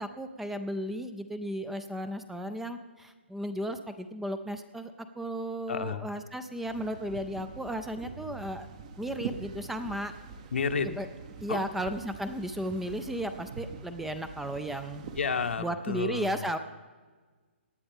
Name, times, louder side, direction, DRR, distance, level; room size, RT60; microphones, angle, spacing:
voice 1, 0.0-8.7 9.0-10.1 10.8-11.1 11.4-15.0 15.6-16.6, right 1 dB, 5° right, 9 dB, 0.4 m, -34 dB
voice 2, 5.7-6.1 10.5-10.9 11.5-11.8 15.2-16.3, left 5 dB, 85° left, 7 dB, 1.1 m, -31 dB
sound 1, 6.6-15.6, right 5 dB, 35° right, 0.8 m, -44 dB
18.0 x 10.0 x 3.6 m, 1.4 s
hypercardioid pair, 160°, 6 cm